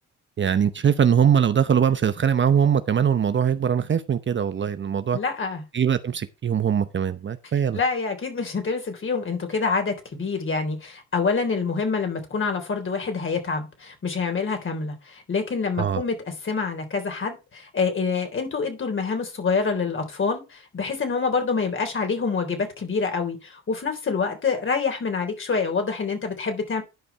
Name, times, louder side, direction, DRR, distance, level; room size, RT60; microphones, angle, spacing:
voice 1, 0.4-5.2 5.7-7.8 15.8-16.0, right 8 dB, 40° right, 0.8 m, -21 dB
voice 2, 5.1-5.6 7.7-26.8, left 4 dB, 40° left, 3.6 m, -26 dB
11.0 x 5.3 x 4.5 m
cardioid pair, 90°, 30 cm